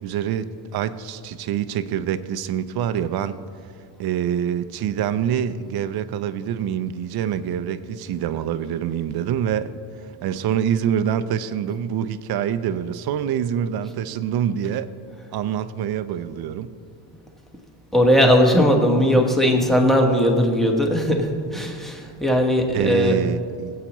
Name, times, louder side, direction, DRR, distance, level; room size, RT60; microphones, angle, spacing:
voice 1, 0.0-3.4 4.0-9.7 10.2-14.9 15.3-16.7 22.7-23.7, right 9 dB, 55° right, 13 dB, 0.5 m, -25 dB
voice 2, 17.9-23.2, equal, ahead, 2 dB, 1.1 m, -18 dB
20.0 x 8.3 x 3.0 m, 2.2 s
cardioid pair, 145°, 48 cm